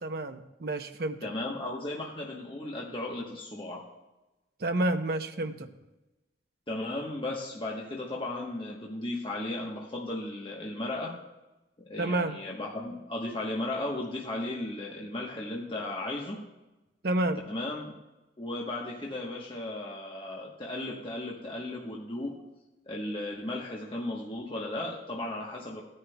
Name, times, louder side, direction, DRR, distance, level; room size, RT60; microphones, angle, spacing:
voice 1, 0.0-1.3 4.6-5.7 12.0-12.3 17.0-17.4, right 1 dB, 60° right, 6 dB, 0.8 m, -29 dB
voice 2, 1.2-3.8 6.7-11.2 11.8-16.4 17.5-17.9 18.4-22.4 22.9-25.8, left 2 dB, 30° left, -2 dB, 1.1 m, -35 dB
16.5 x 9.7 x 2.3 m, 1.0 s
head